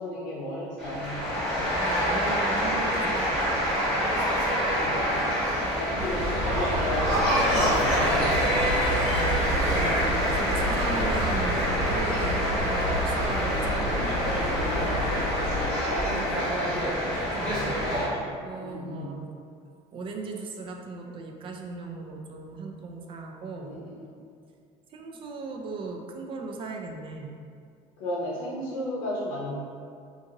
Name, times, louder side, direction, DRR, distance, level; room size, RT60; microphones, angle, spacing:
voice 1, 0.0-1.6 4.7-5.3 5.7-8.8 10.6-10.7 13.9-14.2 14.6-17.2 17.4-19.2 23.6-24.1 28.0-29.6, left 1 dB, 75° left, -6 dB, 0.7 m, -35 dB
sound 1, 0.8-18.0, equal, 5° left, 1.0 m, -26 dB
voice 2, 1.4-3.8 9.0-9.4 10.3-14.3 17.2-17.6 18.4-19.3 19.9-23.8 24.9-27.3, right 3 dB, 35° right, 2 dB, 0.3 m, -37 dB
sound 2, 6.0-15.7, equal, 75° right, 1.1 m, -29 dB
2.5 x 2.5 x 2.8 m, 2.3 s
cardioid pair, 115°, 15 cm